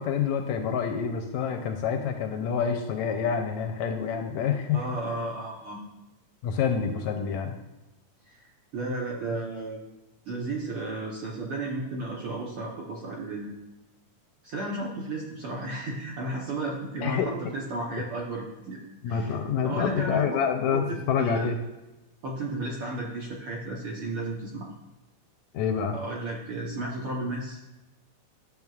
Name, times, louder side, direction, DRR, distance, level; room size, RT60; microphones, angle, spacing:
voice 1, 0.0-4.9 6.4-7.6 17.0-17.3 19.0-21.6 25.5-26.0, left 7 dB, 80° left, 4 dB, 1.8 m, -27 dB
voice 2, 4.7-5.8 8.2-8.4 8.7-9.8 10.2-13.5 14.4-18.8 19.1-19.4 19.6-20.2 20.7-21.5 22.2-24.7 25.9-27.6, right 2 dB, 65° right, -2 dB, 1.4 m, -33 dB
12.0 x 7.0 x 2.4 m, 1.0 s
omnidirectional pair, 3.6 m